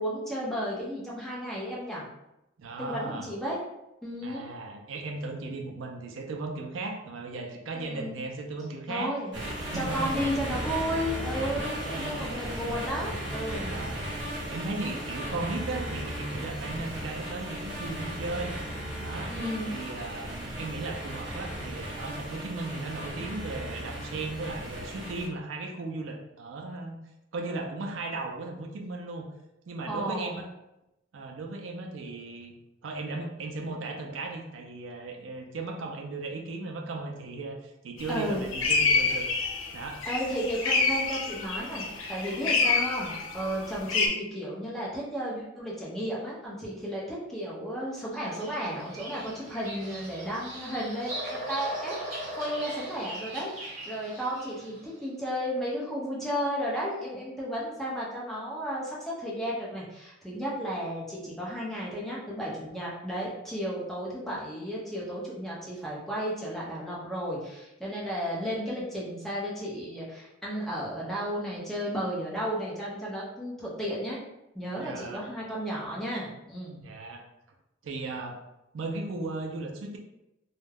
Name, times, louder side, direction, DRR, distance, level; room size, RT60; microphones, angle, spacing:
voice 1, 0.0-2.1 2.8-3.6 4.0-4.5 7.7-8.2 8.9-9.3 9.7-13.8 19.3-19.7 29.9-30.4 38.1-38.4 40.1-51.1 51.5-52.0 52.4-74.2 74.5-76.9, equal, ahead, -6 dB, 0.6 m, -33 dB
voice 2, 2.6-3.3 4.2-9.1 9.6-10.1 11.5-12.3 13.6-14.1 14.5-18.6 19.0-19.3 19.7-27.0 27.3-29.2 29.7-30.5 31.1-32.5 32.8-40.0 74.8-75.2 76.8-77.2 77.8-78.4 78.7-80.0, right 3 dB, 80° right, 2 dB, 0.4 m, -36 dB
sound 1, 9.3-25.3, equal, 65° right, 0.8 m, -36 dB
sound 2, 38.0-38.2 38.5-44.1, left 4 dB, 85° left, 0.5 m, -27 dB
Bird vocalization bird call bird song, 48.1-54.8, right 1 dB, 45° right, 1.1 m, -39 dB
2.3 x 2.1 x 3.3 m, 0.90 s
head